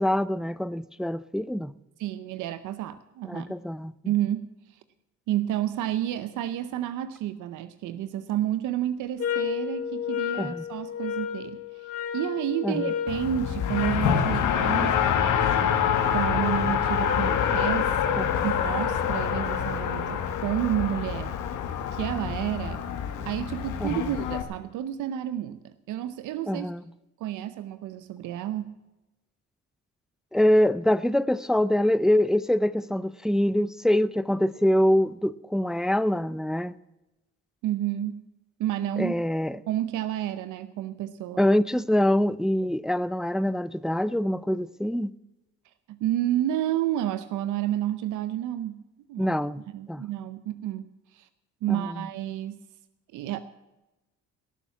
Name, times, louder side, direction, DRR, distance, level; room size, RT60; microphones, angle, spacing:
voice 1, 0.0-1.7 3.3-3.9 10.4-10.7 12.6-12.8 18.2-18.5 23.8-24.0 26.5-26.8 30.3-36.8 39.0-39.6 41.4-45.1 49.2-49.6 49.9-50.0 51.7-52.0, left 1 dB, ahead, 0.4 m, -24 dB
voice 2, 2.0-3.5 4.1-4.5 5.3-15.7 16.1-21.4 21.9-22.8 23.3-26.7 27.2-28.7 37.6-38.2 38.6-39.1 39.7-41.5 45.9-48.8 49.1-49.3 49.7-50.8 51.1-51.3 51.6-52.6 53.1-53.4, right 12 dB, 90° right, 0.7 m, -30 dB
sound 1, 9.2-14.1, left 8 dB, 45° left, 3.5 m, -32 dB
Race car auto racing, 13.1-24.4, left 8 dB, 85° left, 1.7 m, -26 dB
18.0 x 7.1 x 7.2 m
cardioid pair, 90°, 30 cm